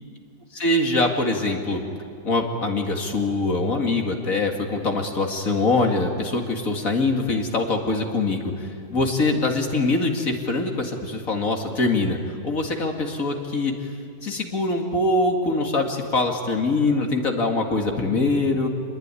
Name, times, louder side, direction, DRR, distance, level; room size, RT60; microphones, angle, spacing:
voice 1, 0.5-1.8 2.2-13.9 14.2-18.7, left 2 dB, 60° left, 2 dB, 2.6 m, -23 dB
27.0 x 20.5 x 9.8 m, 2.3 s
omnidirectional pair, 1.6 m